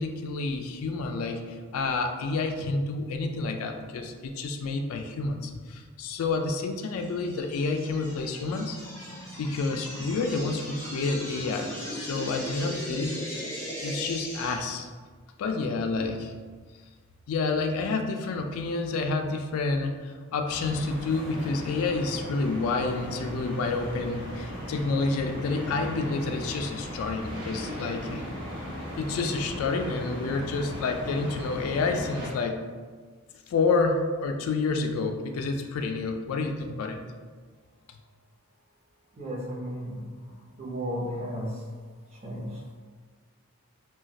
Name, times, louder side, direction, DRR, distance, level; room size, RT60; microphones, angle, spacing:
voice 1, 0.0-8.8 9.4-13.2 13.8-14.9 15.4-16.3 17.3-28.2 29.0-32.6 33.5-37.0, left 3 dB, 75° left, 6 dB, 0.3 m, -29 dB
sound 1, 6.8-14.5, equal, 10° left, 0.5 m, -38 dB
sound 2, 20.5-32.3, left 1 dB, 55° right, 1.0 m, -37 dB
voice 2, 39.2-40.0 40.6-41.6 42.2-42.7, equal, 30° right, -4 dB, 0.6 m, -34 dB
2.4 x 2.2 x 3.9 m, 1.5 s
head